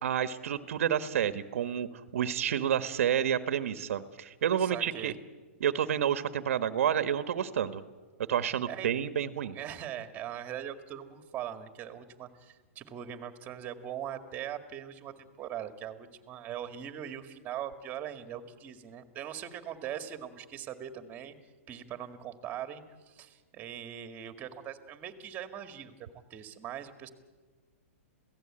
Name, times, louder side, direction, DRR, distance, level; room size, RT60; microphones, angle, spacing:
voice 1, 0.0-5.1 5.6-7.8 8.3-9.6, right 9 dB, 70° right, 11 dB, 1.3 m, -29 dB
voice 2, 4.6-5.2 8.7-8.9 9.5-21.3 21.7-25.9 26.3-27.1, right 10 dB, 20° right, 8 dB, 2.0 m, -41 dB
27.0 x 17.0 x 8.8 m, 1.4 s
hypercardioid pair, 145°, 8 cm